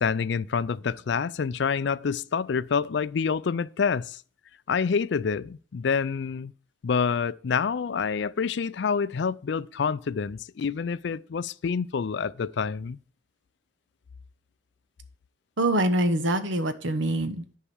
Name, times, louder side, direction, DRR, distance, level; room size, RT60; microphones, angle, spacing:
voice 1, 0.0-4.2 4.7-6.5 6.8-13.0, left 6 dB, 60° left, 0.4 m, -27 dB
voice 2, 15.6-17.6, right 1 dB, 70° right, 1.1 m, -25 dB
10.0 x 4.7 x 7.1 m
head